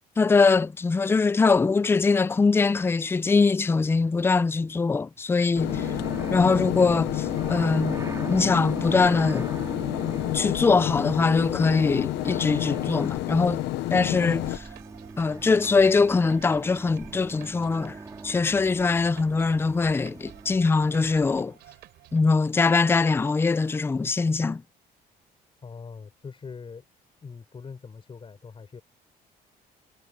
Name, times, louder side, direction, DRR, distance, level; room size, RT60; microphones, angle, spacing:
voice 1, 0.2-5.9 6.3-8.0 8.3-9.5 10.3-13.6 13.9-14.6 15.2-18.0 18.2-21.5 22.1-24.6, left 4 dB, 15° left, 0.4 m, -22 dB
sound 1, 5.5-14.6, left 18 dB, 90° left, 0.7 m, -29 dB
sound 2, 5.7-21.4, right 3 dB, 20° right, 4.5 m, -39 dB
sound 3, 14.3-22.2, right 15 dB, 80° right, 3.5 m, -51 dB
voice 2, 25.6-26.8 27.2-28.8, left 5 dB, 30° left, 6.3 m, -42 dB
cardioid pair, 110°, 17 cm